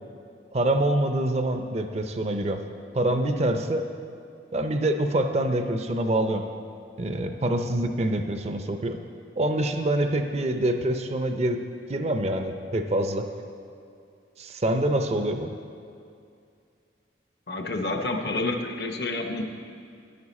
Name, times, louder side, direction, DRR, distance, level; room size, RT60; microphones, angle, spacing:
voice 1, 0.5-2.6 2.9-3.9 4.5-6.4 7.0-9.0 9.4-11.6 11.9-13.2 14.4-15.5, right 1 dB, 35° right, 6 dB, 0.5 m, -25 dB
voice 2, 17.5-19.4, left 2 dB, 60° left, 4 dB, 0.8 m, -29 dB
10.5 x 9.5 x 4.2 m, 2.4 s
head